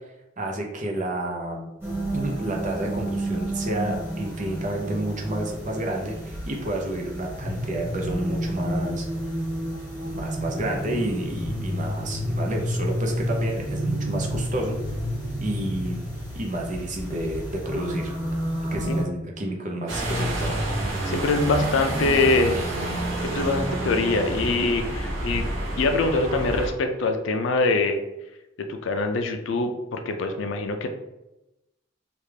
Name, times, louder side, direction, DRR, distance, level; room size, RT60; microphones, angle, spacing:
voice 1, 0.4-1.7 2.1-9.1 10.1-14.8 15.4-16.0 16.3-18.1 18.7-20.7 22.5-22.6, right 1 dB, 40° right, 0 dB, 0.6 m, -30 dB
sound 1, 1.8-19.0, equal, 15° right, 1.4 m, -30 dB
sound 2, 19.9-26.7, right 1 dB, 90° right, 0.8 m, -28 dB
voice 2, 21.0-22.6 23.2-28.0 28.7-30.9, left 3 dB, 70° left, 6 dB, 0.4 m, -24 dB
3.3 x 2.4 x 3.2 m, 0.95 s
head